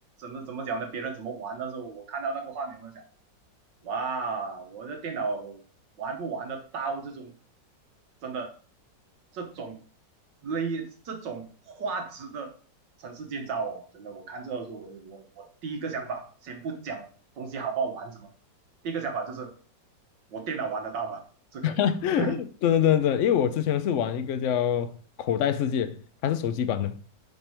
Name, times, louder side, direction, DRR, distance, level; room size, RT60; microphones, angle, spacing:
voice 1, 0.2-3.0 3.8-5.6 6.0-7.3 8.2-8.5 9.3-9.8 10.4-12.5 13.0-17.1 17.4-18.3 18.8-19.5 20.3-21.2 21.5-21.8 22.2-22.4, right 5 dB, 75° right, 1.7 m, -34 dB
voice 2, 21.6-24.9 25.2-26.0 26.2-26.9, left 9 dB, 85° left, 0.6 m, -25 dB
6.0 x 5.5 x 4.4 m
omnidirectional pair, 2.0 m